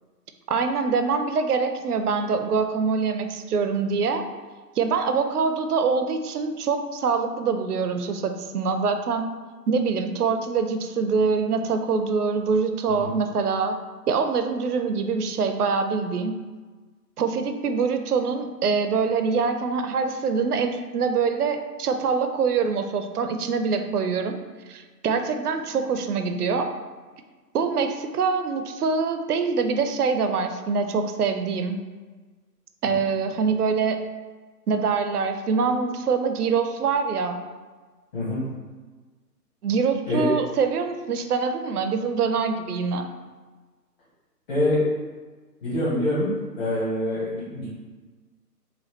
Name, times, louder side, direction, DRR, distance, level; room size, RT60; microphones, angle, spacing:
voice 1, 0.5-4.3 4.8-9.3 9.7-13.8 14.1-16.4 17.2-24.4 24.7-26.7 27.5-31.8 32.8-34.0 34.7-37.4 39.6-43.1, right 5 dB, 70° right, 7 dB, 0.5 m, -24 dB
voice 2, 44.5-44.8 45.6-46.3 46.6-47.7, left 1 dB, 35° left, -11 dB, 1.1 m, -25 dB
4.1 x 2.2 x 3.1 m, 1.4 s
figure-of-eight pair, 135°, 49 cm